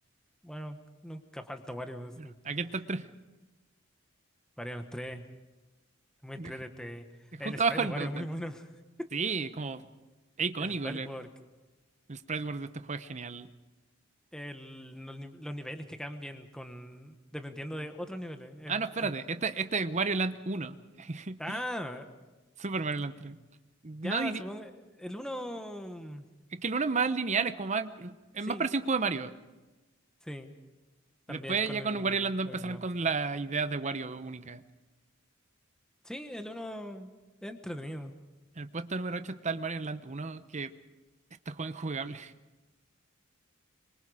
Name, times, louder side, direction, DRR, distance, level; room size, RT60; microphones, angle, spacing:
voice 1, 0.4-2.3 4.6-5.2 6.2-8.7 10.6-11.3 14.3-19.1 21.4-22.1 24.0-24.7 25.0-26.3 28.4-28.7 30.2-30.5 31.3-32.8 36.0-37.1 37.4-38.2, equal, 5° left, 7 dB, 1.3 m, -40 dB
voice 2, 2.2-3.1 6.4-6.5 7.3-8.3 9.1-9.8 10.4-11.1 12.1-13.5 18.7-21.6 22.6-23.4 23.8-24.4 26.5-29.3 31.3-34.6 38.6-40.7 41.5-42.3, right 4 dB, 35° right, 11 dB, 0.8 m, -32 dB
26.0 x 23.5 x 5.0 m, 1.2 s
head